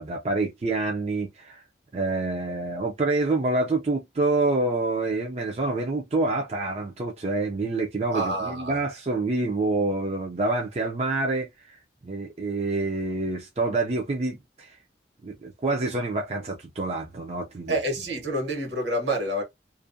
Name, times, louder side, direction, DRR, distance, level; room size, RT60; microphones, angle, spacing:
voice 1, 0.0-1.6 1.9-14.8 15.2-17.8, right 2 dB, 35° right, 0.4 m, -27 dB
voice 2, 8.1-8.8 17.7-19.4, right 1 dB, 70° right, 1.2 m, -28 dB
2.5 x 2.1 x 2.6 m
head